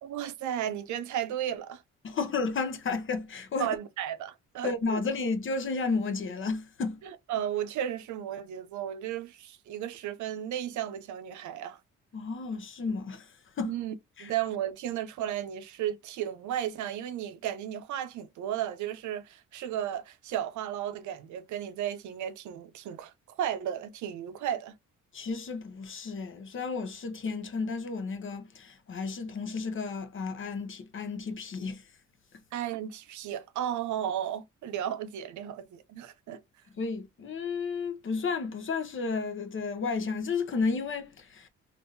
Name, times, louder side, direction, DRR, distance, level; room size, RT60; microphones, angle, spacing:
voice 1, 0.0-1.8 3.6-5.0 7.0-11.8 13.6-13.9 14.2-24.7 32.5-36.4, right 10 dB, 75° right, 0.6 m, -34 dB
voice 2, 2.0-3.7 4.6-7.0 12.1-13.3 13.6-13.7 14.2-14.3 25.1-31.8 36.8-41.5, left 4 dB, 45° left, 0.8 m, -32 dB
3.5 x 2.6 x 2.6 m
cardioid pair, 90°, 30 cm